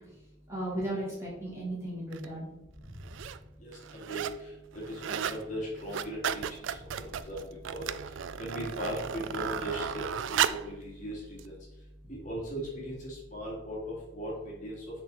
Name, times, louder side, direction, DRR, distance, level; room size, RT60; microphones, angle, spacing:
voice 1, 0.5-2.4 2.9-3.0, right 1 dB, 15° right, -7 dB, 2.7 m, -35 dB
sound 1, 2.1-2.3 2.9-3.4 3.7-4.4 4.7-5.4 5.7-10.7 11.4-11.5, right 8 dB, 80° right, 0.3 m, -34 dB
voice 2, 3.6-4.3 4.9-6.4 7.1-7.4 7.7-7.9 8.4-10.0 10.3-11.5 12.1-14.3 14.6-14.8, equal, 40° left, -4 dB, 2.3 m, -38 dB
8.3 x 4.3 x 4.1 m, 0.92 s
head